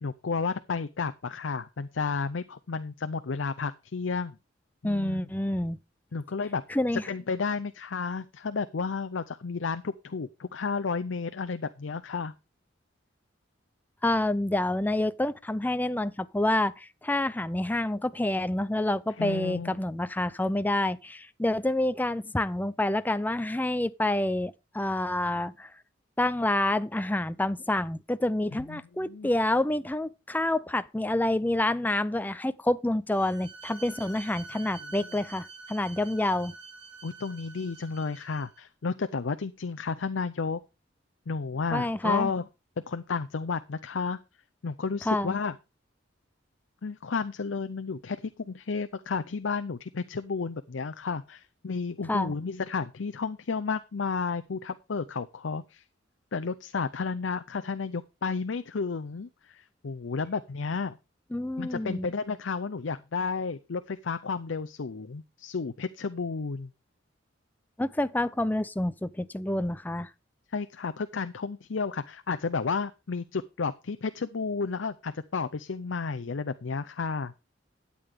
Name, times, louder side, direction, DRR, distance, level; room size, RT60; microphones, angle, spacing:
voice 1, 0.0-4.4 4.8-5.3 6.1-6.6 7.1-12.3 19.2-19.8 28.7-29.3 34.8-34.9 37.0-40.6 41.3-42.5 42.9-44.2 44.6-45.5 46.8-55.8 56.3-61.0 61.6-66.7 70.5-77.3, left 4 dB, 75° left, 0.6 m, -32 dB
voice 2, 4.8-5.8 6.7-7.0 14.0-25.7 26.2-36.5 41.7-42.3 45.0-45.4 52.1-52.3 61.3-62.1 67.8-70.1, left 1 dB, 10° left, 0.5 m, -28 dB
Bowed string instrument, 33.1-38.6, right 4 dB, 65° right, 2.5 m, -47 dB
12.5 x 8.6 x 3.6 m
head